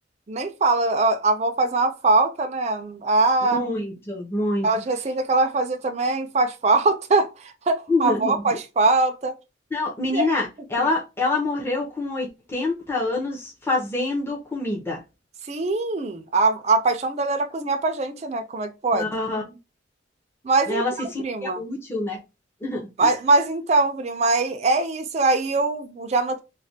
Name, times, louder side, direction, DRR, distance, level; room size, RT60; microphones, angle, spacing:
voice 1, 0.3-3.6 4.6-7.3 7.7-9.3 10.1-10.3 10.8-10.9 15.5-19.1 20.4-20.8 21.2-21.6 23.0-26.4, right 3 dB, 35° right, 0.4 m, -22 dB
voice 2, 3.4-4.7 7.9-8.5 9.7-15.0 18.9-19.6 20.7-22.2 22.6-23.1, left 2 dB, 15° left, 0.7 m, -26 dB
3.2 x 2.2 x 2.7 m
head